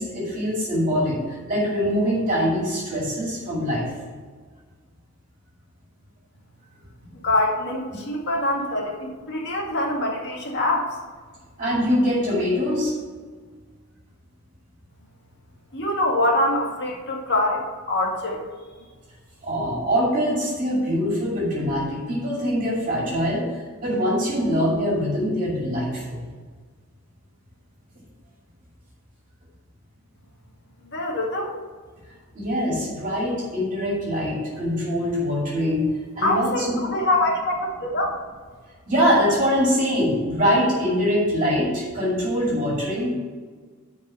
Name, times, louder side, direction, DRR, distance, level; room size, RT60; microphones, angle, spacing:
voice 1, 0.0-3.9 7.9-8.0 11.6-12.9 19.4-26.2 32.3-36.8 38.9-43.1, equal, 35° right, -4 dB, 2.4 m, -23 dB
voice 2, 7.1-11.0 15.7-18.4 30.9-31.5 36.2-38.1, left 1 dB, 50° left, 0 dB, 1.9 m, -24 dB
10.5 x 4.8 x 5.6 m, 1.5 s
head